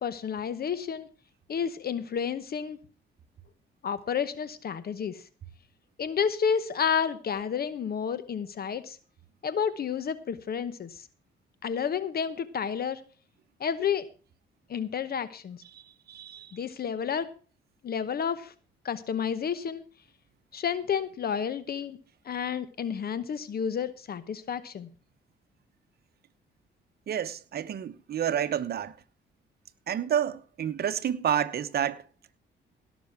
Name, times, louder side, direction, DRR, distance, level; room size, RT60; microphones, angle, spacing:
voice 1, 0.0-1.1 1.5-2.8 3.8-5.3 6.0-9.0 9.4-11.1 11.6-13.0 13.6-14.1 14.7-15.6 16.5-17.3 17.8-18.5 18.8-19.8 20.5-22.0 22.2-24.9, left 7 dB, 50° left, 0.9 m, -30 dB
voice 2, 16.1-16.5 27.1-29.0 29.9-32.0, right 9 dB, 50° right, 0.9 m, -29 dB
17.0 x 6.1 x 6.0 m
cardioid pair, 90°, 20 cm